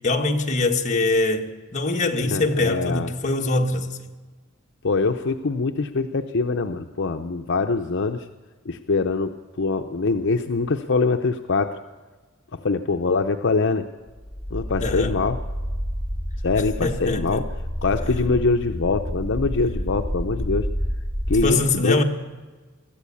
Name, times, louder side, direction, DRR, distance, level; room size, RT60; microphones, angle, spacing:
voice 1, 0.0-3.9 14.8-15.2 16.8-17.4 21.4-22.0, left 2 dB, 35° left, 1.6 m, -23 dB
voice 2, 2.2-3.1 4.8-8.3 8.7-11.8 12.5-13.9 14.5-15.4 16.4-17.5 17.8-20.7 21.3-22.0, left 3 dB, 60° left, 0.7 m, -23 dB
sound 1, 14.1-21.4, equal, 10° left, 7.9 m, -29 dB
22.0 x 14.0 x 8.5 m
head